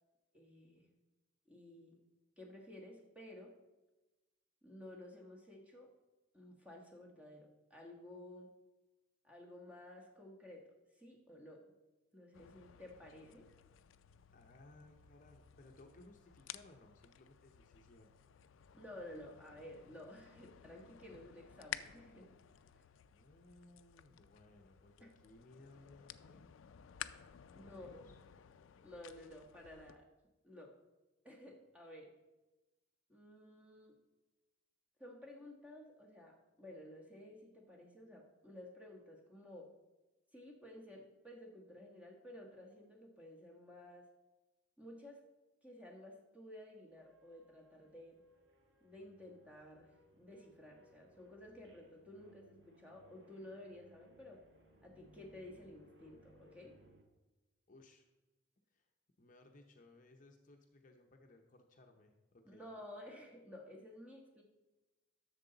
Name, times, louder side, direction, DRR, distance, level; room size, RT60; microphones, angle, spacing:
voice 1, 0.3-0.9 1.5-2.0 2.4-3.6 4.6-5.9 6.3-8.5 9.2-10.6 10.9-11.7 12.1-13.5 18.7-22.3 25.0-25.1 27.5-28.0 28.8-30.0 30.4-30.7 31.2-32.1 33.1-34.0 35.0-39.7 40.3-44.1 44.8-45.2 45.6-48.2 48.8-54.4 54.8-56.7 62.4-64.4, left 1 dB, 5° right, -1 dB, 1.3 m, -54 dB
sound 1, 12.3-30.0, left 10 dB, 85° left, 0.4 m, -54 dB
voice 2, 14.3-18.1 23.1-26.5 27.5-28.2 57.7-58.1 58.7-58.9 59.2-62.6, left 2 dB, 40° left, 3 dB, 0.7 m, -62 dB
sound 2, 46.9-57.0, right 1 dB, 65° right, 1.2 m, -66 dB
11.0 x 6.8 x 3.9 m, 1.1 s
head